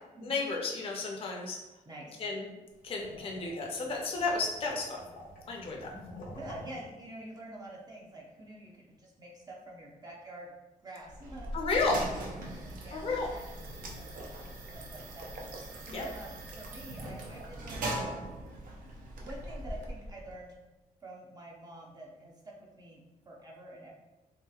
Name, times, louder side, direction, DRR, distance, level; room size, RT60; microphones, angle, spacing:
voice 1, 0.2-1.6 2.2-2.5 2.8-5.0 5.5-5.9 11.5-12.0 12.9-13.3 15.9-16.0, left 3 dB, 45° left, 0 dB, 0.5 m, -32 dB
voice 2, 1.9-2.2 6.4-10.5 10.8-11.5 12.0-15.3 15.9-18.4 19.2-20.5 21.0-23.0 23.3-23.9, right 1 dB, 30° right, -2 dB, 0.5 m, -47 dB
sound 1, 2.7-7.0, left 1 dB, 85° left, 0.8 m, -49 dB
sound 2, 11.1-20.4, right 1 dB, 85° right, 0.5 m, -40 dB
3.1 x 2.8 x 2.3 m, 1.1 s
wide cardioid pair, 145°, 14 cm